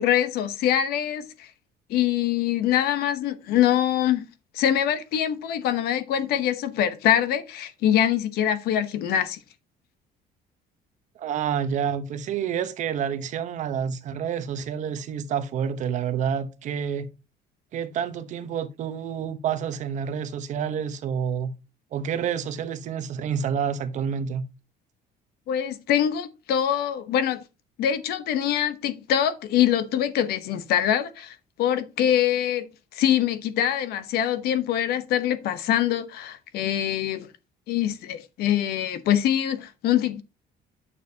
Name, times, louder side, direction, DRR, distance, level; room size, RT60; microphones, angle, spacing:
voice 1, 0.0-1.5 1.9-4.3 4.5-9.4 25.5-27.4 27.8-32.7 32.9-37.3 37.7-40.2, left 10 dB, 65° left, 0.9 m, -24 dB
voice 2, 11.2-17.1 17.7-21.5 21.9-24.4, right 7 dB, 45° right, 0.9 m, -28 dB
8.7 x 6.7 x 2.8 m
cardioid pair, 170°, 18 cm